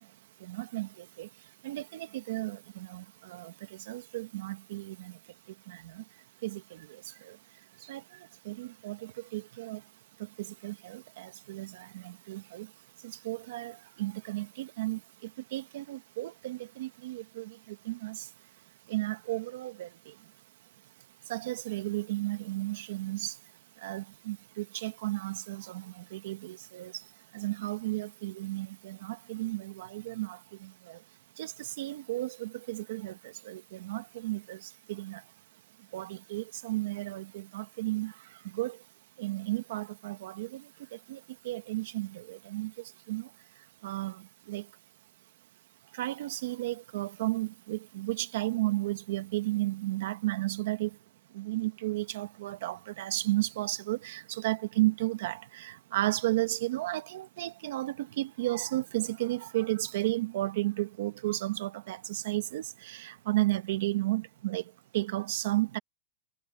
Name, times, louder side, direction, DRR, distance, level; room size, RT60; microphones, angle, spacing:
voice 1, 0.4-1.3 1.6-3.5 3.9-5.1 5.7-6.0 6.4-6.8 7.3-7.4 7.9-8.0 8.4-9.8 10.4-12.7 13.0-15.0 15.5-17.6 17.8-18.3 18.9-19.9 21.3-23.3 23.8-26.9 27.3-31.0 31.4-33.2 33.4-35.2 35.9-38.1 38.5-38.8 39.2-40.6 41.1-41.2 41.4-42.7 43.1-43.3 43.8-44.2 44.5-44.6 46.0-50.9 51.3-64.6 64.9-65.8, right 17 dB, 55° right, 1.4 m, -33 dB
supercardioid pair, 170°, 0 cm